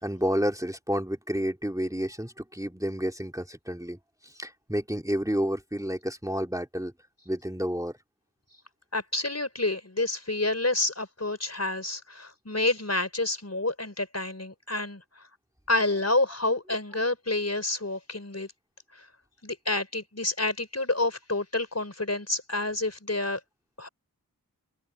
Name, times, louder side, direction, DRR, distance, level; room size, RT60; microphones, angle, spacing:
voice 1, 0.0-4.0 4.3-6.9 7.3-7.9, equal, 10° right, 2.9 m, -30 dB
voice 2, 8.9-15.0 15.7-18.5 19.4-23.4 23.8-23.9, left 2 dB, 45° left, 4.7 m, -28 dB
wide cardioid pair, 45°, 36 cm